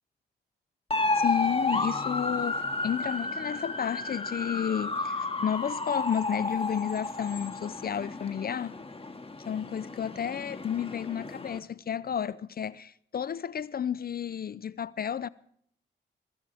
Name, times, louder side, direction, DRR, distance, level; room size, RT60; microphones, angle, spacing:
sound 1, 0.9-11.6, left 3 dB, 30° left, 2.0 m, -32 dB
voice 1, 1.1-8.8 9.5-15.3, left 8 dB, 50° left, 0.5 m, -32 dB
21.5 x 17.0 x 3.5 m
supercardioid pair, 45°, 20 cm